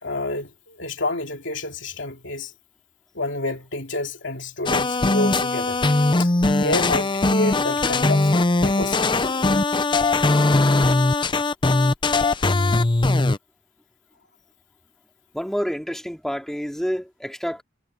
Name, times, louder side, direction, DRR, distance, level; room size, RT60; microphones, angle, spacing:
voice 1, 0.0-2.5 3.1-5.8 6.2-6.3 6.6-9.2, left 2 dB, 65° left, 3.0 m, -29 dB
sound 1, 4.7-13.4, left 2 dB, 25° left, 0.6 m, -20 dB
voice 2, 15.3-17.6, equal, ahead, 3.2 m, -28 dB
head